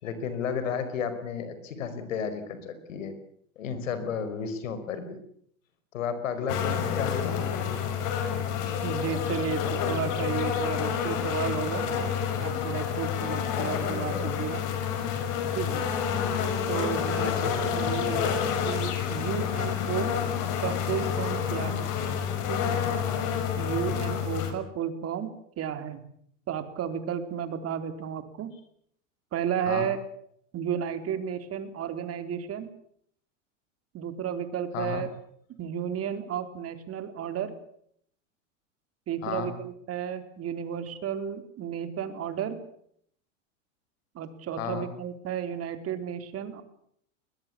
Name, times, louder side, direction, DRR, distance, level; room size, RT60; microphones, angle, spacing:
voice 1, 0.0-3.1 3.6-5.2 5.9-7.4 17.2-17.7 29.7-29.9 34.7-35.0 39.2-39.5 44.6-44.9, left 6 dB, 80° left, 11 dB, 5.1 m, -33 dB
sound 1, 6.5-24.5, left 7 dB, 50° left, 5.9 m, -29 dB
voice 2, 8.8-11.9 12.4-14.6 15.5-15.9 16.7-18.4 18.6-20.1 20.6-21.9 22.5-22.8 23.6-25.3 25.6-26.0 26.5-28.5 29.3-30.0 30.5-32.7 33.9-35.1 35.6-37.5 39.1-42.6 44.1-46.6, right 8 dB, 40° right, 9 dB, 3.9 m, -33 dB
21.5 x 21.5 x 8.7 m, 0.67 s
hypercardioid pair, 95°, 38 cm